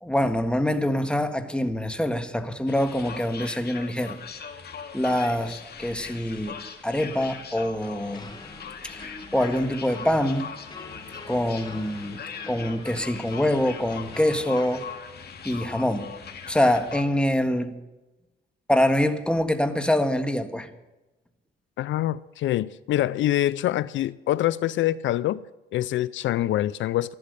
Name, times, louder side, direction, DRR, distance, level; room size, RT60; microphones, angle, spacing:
voice 1, 0.0-4.2 4.9-6.6 6.8-8.3 8.8-10.5 11.3-14.8 15.4-16.2 16.5-17.8 18.7-20.7, left 1 dB, 5° left, 8 dB, 1.6 m, -25 dB
sound 1, 2.7-17.0, left 6 dB, 55° left, 2.1 m, -40 dB
sound 2, 8.1-15.0, left 2 dB, 20° left, 1.8 m, -45 dB
voice 2, 21.8-25.4 25.7-27.1, left 13 dB, 75° left, 19 dB, 0.5 m, -25 dB
14.0 x 12.0 x 6.7 m, 1.0 s
cardioid pair, 90°, 20 cm